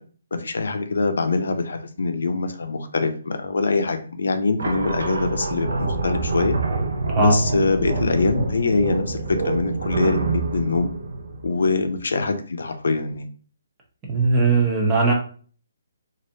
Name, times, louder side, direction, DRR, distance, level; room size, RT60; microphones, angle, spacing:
voice 1, 0.3-6.6 7.2-10.9 11.4-13.3, left 3 dB, 75° left, 7 dB, 0.5 m, -23 dB
sound 1, 4.6-12.0, right 3 dB, 75° right, 0.6 m, -26 dB
voice 2, 14.1-15.1, right 3 dB, 15° right, -1 dB, 0.7 m, -18 dB
3.1 x 2.6 x 2.7 m, 0.42 s
hypercardioid pair, 170°, 0 cm